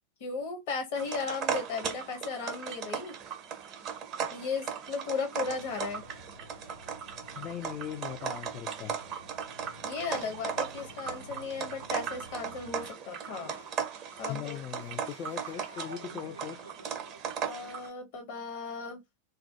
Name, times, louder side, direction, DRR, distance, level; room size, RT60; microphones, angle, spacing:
voice 1, 0.2-3.2 4.3-6.0 9.8-13.6 14.2-14.6 17.5-19.0, left 4 dB, 50° left, 0.9 m, -36 dB
sound 1, 0.9-17.9, right 7 dB, 35° right, 0.5 m, -37 dB
sound 2, 5.4-12.9, equal, 90° right, 0.5 m, -52 dB
voice 2, 7.4-9.0 14.3-16.7, left 9 dB, 30° left, 0.3 m, -39 dB
sound 3, 10.8-17.9, equal, 90° left, 0.6 m, -53 dB
2.3 x 2.0 x 2.8 m
figure-of-eight pair, 90°, 0 cm